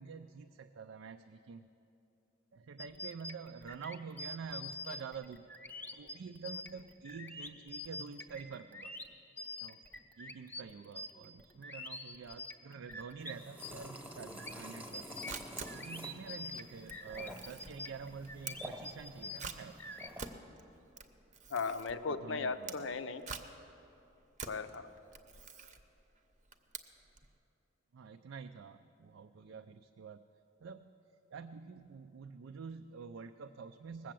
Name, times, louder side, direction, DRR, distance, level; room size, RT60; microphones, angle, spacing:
voice 1, 0.0-1.7 2.5-5.4 5.9-8.9 9.6-9.8 10.2-15.2 15.7-19.7 22.1-22.9 27.9-30.2 30.6-30.9 31.3-34.1, right 5 dB, 80° right, 8 dB, 0.4 m, -47 dB
sound 1, 2.8-13.3 13.6-20.1, left 2 dB, 10° left, 0.6 m, -46 dB
sound 2, 13.2-20.3, equal, 10° right, 1.0 m, -50 dB
Camera, 14.9-27.3, right 5 dB, 40° right, 0.7 m, -48 dB
voice 2, 21.5-23.3 24.5-24.9, left 4 dB, 70° left, 10 dB, 0.6 m, -37 dB
19.0 x 7.7 x 7.6 m, 2.8 s
head